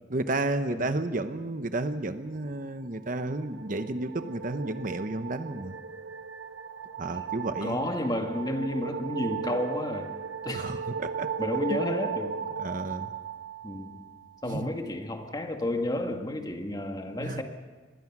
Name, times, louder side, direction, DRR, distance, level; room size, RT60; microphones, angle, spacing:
voice 1, 0.1-5.8 7.0-7.9 10.5-11.3 11.7-11.8 12.6-13.1 14.4-14.7 17.2-17.4, right 2 dB, 45° right, 9 dB, 1.0 m, -32 dB
sound 1, 2.9-14.3, right 6 dB, 80° right, 1.4 m, -36 dB
voice 2, 7.6-10.1 10.4-10.7 11.4-12.4 13.6-14.0 14.4-17.4, left 1 dB, 20° left, 4 dB, 2.0 m, -31 dB
25.5 x 22.0 x 6.1 m, 1.5 s
head